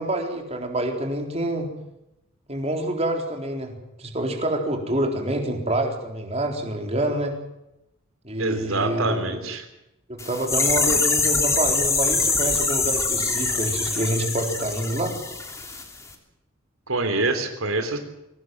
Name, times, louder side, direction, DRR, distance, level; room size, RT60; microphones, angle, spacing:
voice 1, 0.0-1.7 2.5-7.3 8.2-9.4 10.1-15.2, right 1 dB, 30° right, 2 dB, 4.2 m, -27 dB
voice 2, 8.4-9.7 16.9-18.0, right 2 dB, 90° right, 7 dB, 3.5 m, -25 dB
sound 1, 10.2-16.1, left 4 dB, 15° left, 3.1 m, -24 dB
23.0 x 19.0 x 7.8 m, 0.88 s
head